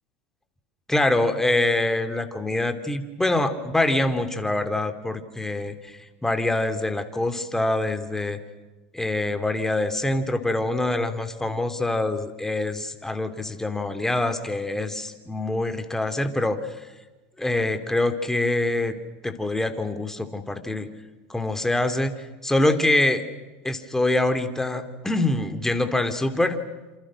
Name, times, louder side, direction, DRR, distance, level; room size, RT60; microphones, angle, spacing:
voice 1, 0.9-8.4 8.9-16.9 17.4-18.9 19.2-20.9 21.3-22.1 22.4-23.2 23.6-26.6, left 2 dB, 5° left, 8 dB, 2.9 m, -25 dB
28.0 x 27.5 x 6.4 m, 1.2 s
hypercardioid pair, 100°, 6 cm